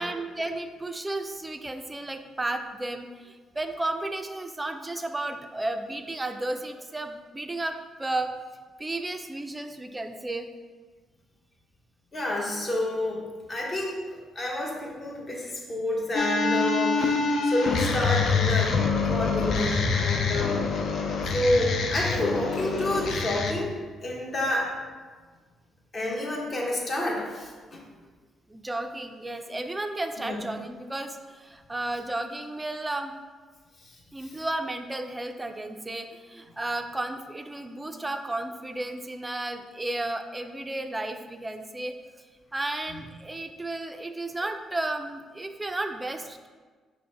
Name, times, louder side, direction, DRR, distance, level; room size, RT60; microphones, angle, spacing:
voice 1, 0.0-8.3 8.8-10.5 28.5-33.1 34.1-42.0 42.5-46.5, right 2 dB, 15° right, 7 dB, 0.3 m, -33 dB
voice 2, 12.1-13.2 13.5-18.8 19.1-20.8 21.3-23.7 24.0-24.8 25.9-27.8 30.2-30.4 33.8-34.4, left 1 dB, 35° left, -2 dB, 1.0 m, -29 dB
sound 1, 16.1-23.5, left 4 dB, 65° left, 0.5 m, -26 dB
5.0 x 2.1 x 4.6 m, 1.4 s
cardioid pair, 90°, 0 cm